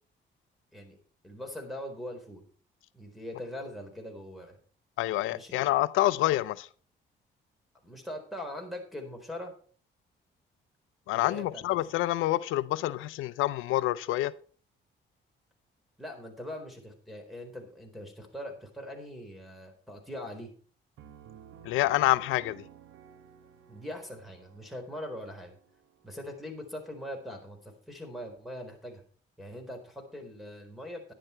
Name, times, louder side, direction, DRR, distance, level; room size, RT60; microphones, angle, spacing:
voice 1, 1.2-2.4 2.9-4.6 5.3-5.6 7.8-9.5 11.1-11.6 16.0-20.5 23.7-25.6 26.0-29.0 29.4-31.1, left 1 dB, ahead, 4.1 m, -41 dB
voice 2, 5.0-6.7 11.1-14.3 21.6-22.6, left 16 dB, 90° left, 0.5 m, -27 dB
Piano, 21.0-26.5, right 9 dB, 80° right, 1.2 m, -54 dB
11.0 x 11.0 x 4.5 m
cardioid pair, 90°, 20 cm